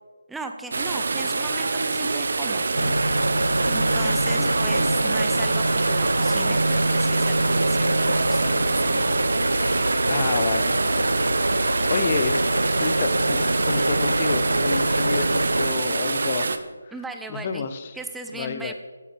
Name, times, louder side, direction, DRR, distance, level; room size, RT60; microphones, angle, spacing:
voice 1, 0.3-2.9 3.7-9.1 16.9-17.7 17.9-18.7, right 3 dB, 5° right, 5 dB, 0.6 m, -37 dB
sound 1, 0.7-16.6, right 3 dB, 55° right, 0.8 m, -26 dB
sound 2, 2.8-15.8, right 1 dB, 80° right, 0.7 m, -24 dB
voice 2, 4.2-4.6 10.1-11.1 11.9-12.4 12.7-16.5 16.8-16.9 17.3-17.9 18.3-18.7, left 5 dB, 30° left, 10 dB, 0.8 m, -29 dB
13.0 x 11.0 x 3.5 m, 1.4 s
figure-of-eight pair, 155°, 0 cm